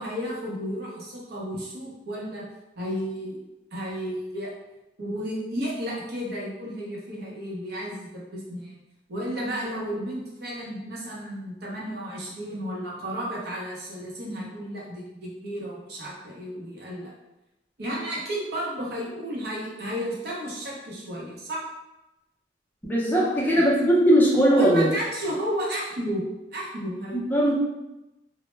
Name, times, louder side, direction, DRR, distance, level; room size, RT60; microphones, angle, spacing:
voice 1, 0.0-2.4 2.8-3.4 3.7-4.5 5.0-8.8 9.1-17.1 17.8-21.6 23.1-23.6 24.5-27.3, equal, 60° right, -4 dB, 0.7 m, -33 dB
voice 2, 22.8-24.9 27.1-27.5, equal, 10° left, -5 dB, 0.4 m, -20 dB
2.1 x 2.0 x 3.1 m, 0.95 s
head